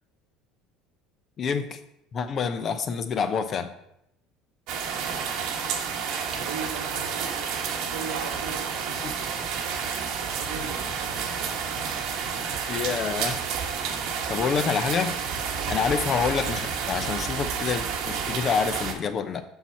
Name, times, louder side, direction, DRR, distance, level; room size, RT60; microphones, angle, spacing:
voice 1, 1.4-1.8 2.1-3.7 9.0-9.1 12.7-13.4 14.3-15.1 15.7-19.4, left 6 dB, 45° left, 10 dB, 0.7 m, -27 dB
sound 1, 4.7-18.9, right 6 dB, 65° right, 1.0 m, -30 dB
voice 2, 6.4-7.3 7.9-8.6 10.3-10.8 15.6-15.8, right 5 dB, 85° right, 4 dB, 1.0 m, -37 dB
5.8 x 5.7 x 4.3 m, 0.78 s
hypercardioid pair, 80°, 0 cm